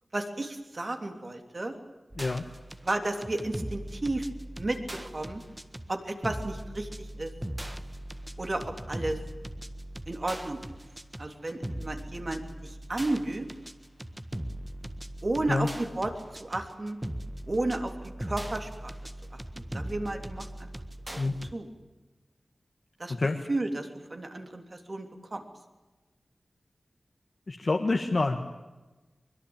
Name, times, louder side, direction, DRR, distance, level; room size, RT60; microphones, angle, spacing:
voice 1, 0.1-1.7 2.8-4.3 4.6-4.8 5.1-5.4 5.9-6.9 7.2-7.3 8.4-9.2 10.1-10.6 11.2-13.5 15.2-16.1 16.4-17.0 17.5-17.9 18.2-18.9 19.5-20.7 21.1-21.7 23.0-23.1 23.5-25.4, right 2 dB, 40° right, 5 dB, 3.3 m, -32 dB
sound 1, 2.1-21.5, right 1 dB, 15° right, 1.6 m, -40 dB
voice 2, 27.5-28.4, left 3 dB, 55° left, 2 dB, 1.8 m, -27 dB
24.0 x 22.0 x 8.9 m, 1.1 s
wide cardioid pair, 80°, 0 cm